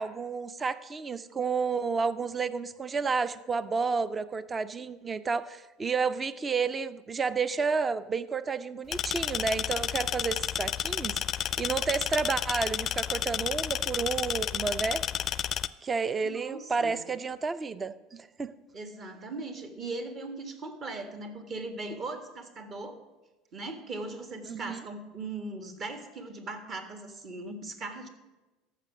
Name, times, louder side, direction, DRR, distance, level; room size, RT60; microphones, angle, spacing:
voice 1, 0.0-11.2 11.6-15.0 15.8-18.5 24.5-24.8, right 5 dB, 25° right, 15 dB, 0.5 m, -31 dB
sound 1, 8.9-15.7, left 10 dB, 40° left, 0.4 m, -31 dB
voice 2, 16.2-17.0 18.7-23.0 23.5-28.1, right 3 dB, 40° right, 7 dB, 1.6 m, -39 dB
14.0 x 5.9 x 6.1 m, 1.1 s
hypercardioid pair, 75°, 0 cm